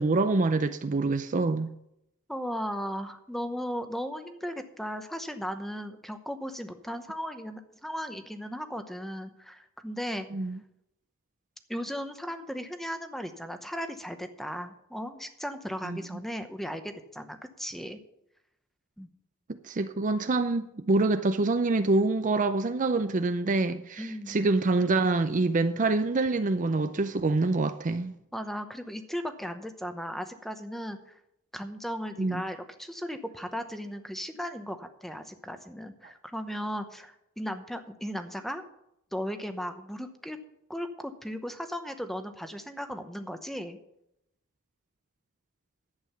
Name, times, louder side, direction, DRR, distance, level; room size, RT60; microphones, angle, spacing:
voice 1, 0.0-1.7 10.3-10.6 15.8-16.0 19.5-28.1 32.2-32.5, right 3 dB, 35° right, 0.5 m, -26 dB
voice 2, 2.3-10.3 11.7-18.0 19.0-19.1 24.0-24.4 28.3-31.0 31.5-38.6 39.1-40.4 40.7-43.8, equal, ahead, 0.9 m, -36 dB
11.0 x 8.6 x 5.7 m
head